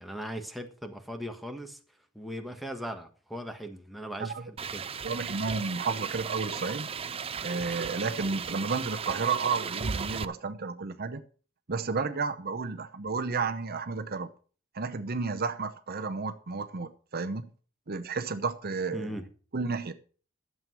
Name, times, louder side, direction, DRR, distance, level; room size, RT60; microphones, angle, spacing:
voice 1, 0.0-1.8 2.1-4.9 18.9-19.3, equal, ahead, 1.4 m, -39 dB
sound 1, 4.6-10.3, right 6 dB, 30° right, 0.5 m, -36 dB
voice 2, 5.0-6.9 7.4-11.2 11.7-14.3 14.7-17.5 17.9-19.1 19.5-19.9, right 4 dB, 50° right, 0.9 m, -32 dB
12.0 x 7.7 x 6.1 m
head